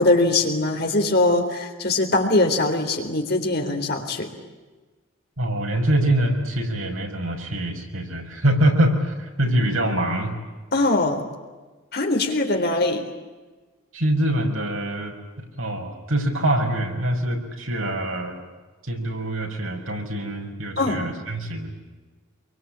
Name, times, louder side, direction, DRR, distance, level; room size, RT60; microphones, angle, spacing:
voice 1, 0.0-4.3 10.7-11.2 11.9-13.0 20.8-21.1, left 2 dB, 50° left, 4 dB, 3.9 m, -21 dB
voice 2, 5.4-10.3 13.9-18.4 18.8-21.7, right 1 dB, 80° right, 2 dB, 5.7 m, -24 dB
26.5 x 23.5 x 8.8 m, 1.3 s
head